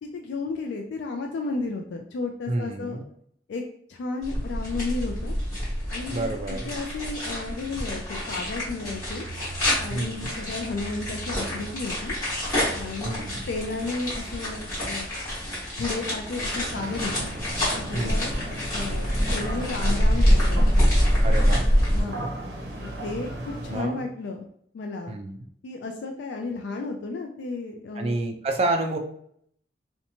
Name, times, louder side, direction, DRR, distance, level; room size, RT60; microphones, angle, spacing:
voice 1, 0.0-3.0 3.5-3.6 3.9-5.4 5.9-9.3 9.8-12.2 12.7-15.1 15.8-17.3 17.8-18.3 18.7-20.9 21.9-22.3 22.8-24.4 24.7-25.1 25.6-28.1, left 3 dB, 80° left, 3 dB, 0.3 m, -33 dB
voice 2, 2.5-3.0 6.1-6.7 9.9-10.3 13.0-13.4 17.9-18.3 21.2-21.7 22.0-22.3 23.7-24.1 25.1-25.4 28.0-29.0, right 2 dB, 35° right, 5 dB, 0.3 m, -29 dB
sound 1, 4.2-22.0, equal, 20° left, 1.2 m, -26 dB
sound 2, 16.7-23.8, right 1 dB, 75° right, 0.6 m, -35 dB
2.8 x 2.1 x 2.7 m, 0.67 s
head